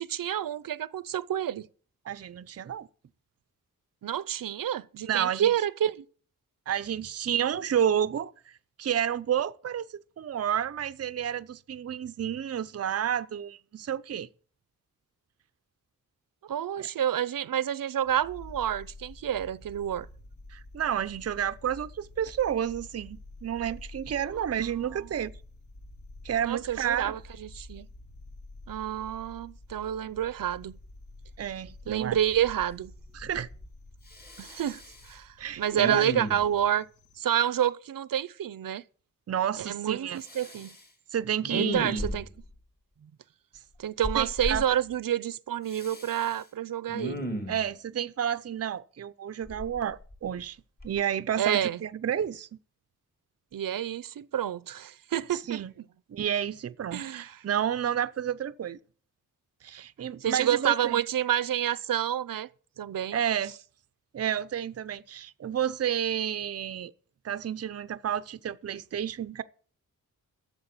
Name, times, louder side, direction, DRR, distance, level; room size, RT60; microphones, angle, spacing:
voice 1, 0.0-1.7 4.0-6.0 16.4-20.1 24.3-24.4 26.4-27.9 28.7-30.8 31.9-32.9 34.4-36.9 37.2-38.8 39.6-40.7 41.5-42.3 43.8-47.3 51.4-51.8 53.5-55.6 56.9-57.4 60.2-62.5 62.8-63.2, right 10 dB, 80° right, 0.7 m, -29 dB
voice 2, 2.1-2.9 5.0-5.5 6.7-8.3 8.8-14.3 16.8-16.9 20.5-25.3 26.2-27.1 31.4-32.2 33.1-33.5 35.4-36.0 39.3-40.2 41.1-42.0 43.0-43.1 44.2-44.8 47.5-50.6 50.8-52.5 55.3-55.7 56.1-58.8 59.6-61.0 63.1-63.5 64.1-66.9 67.2-69.4, right 9 dB, 45° right, 0.6 m, -30 dB
sound 1, 18.0-37.2, left 2 dB, 60° left, 2.1 m, -49 dB
Respiratory sounds, 31.6-31.7 32.2-32.7 33.0-33.7 34.1-35.1 35.8-36.6 40.2-40.8 41.4-42.5 44.0-44.6 45.7-46.4 46.9-47.7 49.5-50.4 50.8-51.0, left 1 dB, 30° left, 2.3 m, -36 dB
13.0 x 7.4 x 8.2 m
wide cardioid pair, 170°, 33 cm